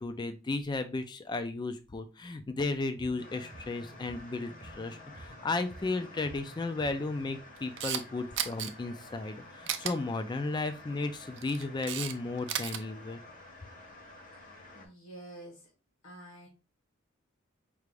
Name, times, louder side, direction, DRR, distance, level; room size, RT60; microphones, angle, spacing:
voice 1, 0.0-13.2, left 3 dB, 20° left, 10 dB, 0.3 m, -34 dB
sound 1, 3.0-7.5, right 1 dB, 25° right, 0.7 m, -52 dB
sound 2, 3.2-14.9, left 2 dB, 40° left, 0.9 m, -51 dB
Camera, 7.6-8.0 8.4-8.7 9.7-9.9 11.2-12.1 12.4-12.8, right 9 dB, 55° right, 0.5 m, -34 dB
voice 2, 14.3-15.7 16.0-16.5, right 1 dB, 70° left, -3 dB, 1.4 m, -49 dB
4.7 x 2.5 x 3.2 m, 0.30 s
head